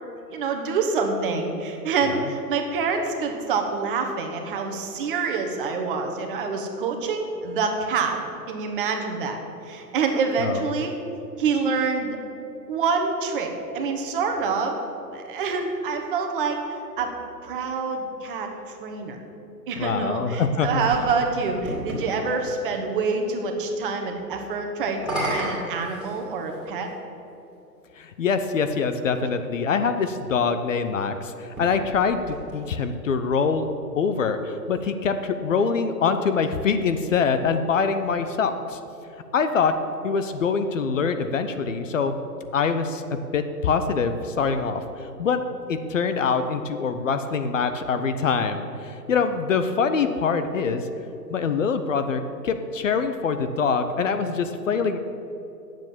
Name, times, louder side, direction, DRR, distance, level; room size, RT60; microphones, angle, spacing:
voice 1, 0.3-8.2 8.5-9.4 9.6-10.9 11.4-12.2 12.7-14.8 15.1-16.6 17.0-17.1 17.4-19.2 19.7-26.9, right 4 dB, 30° right, 3 dB, 1.2 m, -26 dB
voice 2, 19.8-20.8 28.0-33.7 34.0-38.8 39.3-39.7 40.0-42.2 42.5-45.4 45.7-50.9 51.3-55.0, left 5 dB, 50° left, 9 dB, 0.7 m, -24 dB
sound 1, 20.2-22.1 24.9-26.7 27.6-27.7 31.4-33.0, equal, ahead, 2.3 m, -33 dB
9.1 x 7.6 x 7.4 m, 2.8 s
figure-of-eight pair, 130°, 50 cm